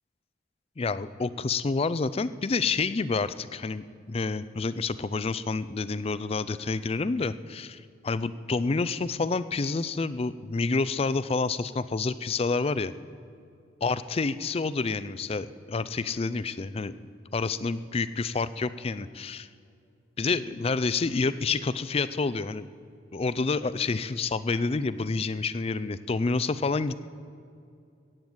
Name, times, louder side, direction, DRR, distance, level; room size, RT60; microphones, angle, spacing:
voice 1, 0.8-12.9 13.8-17.0 17.3-19.5 20.2-22.7 23.1-27.1, left 4 dB, 30° left, 15 dB, 0.4 m, -28 dB
15.5 x 9.0 x 7.9 m, 2.5 s
head